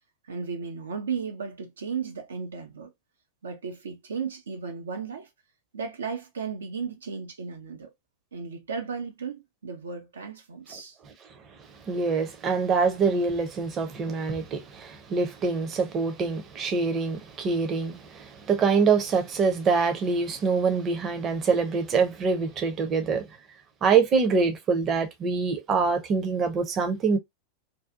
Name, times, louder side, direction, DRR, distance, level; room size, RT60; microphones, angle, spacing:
voice 1, 0.3-2.9 3.4-5.3 5.7-7.9 8.3-11.0, right 5 dB, 70° right, 0.5 m, -35 dB
voice 2, 11.9-23.3 23.8-27.2, right 5 dB, 30° right, 0.6 m, -25 dB
2.6 x 2.3 x 2.3 m
figure-of-eight pair, 90°, 0 cm